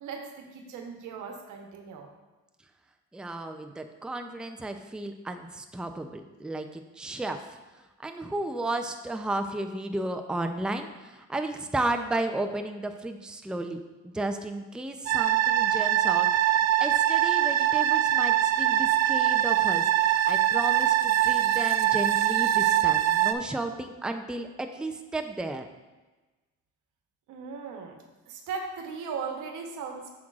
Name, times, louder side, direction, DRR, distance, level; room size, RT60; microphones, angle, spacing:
voice 1, 0.0-2.1 27.3-28.0 28.3-30.1, right 5 dB, 90° right, 3 dB, 1.0 m, -37 dB
voice 2, 3.1-7.6 8.0-13.8 14.0-16.3 16.8-25.7, right 2 dB, 5° right, 6 dB, 0.5 m, -33 dB
sound 1, 15.1-23.3, right 12 dB, 60° right, 0.5 m, -23 dB
8.4 x 6.2 x 2.4 m, 1.2 s
cardioid pair, 90°, 30 cm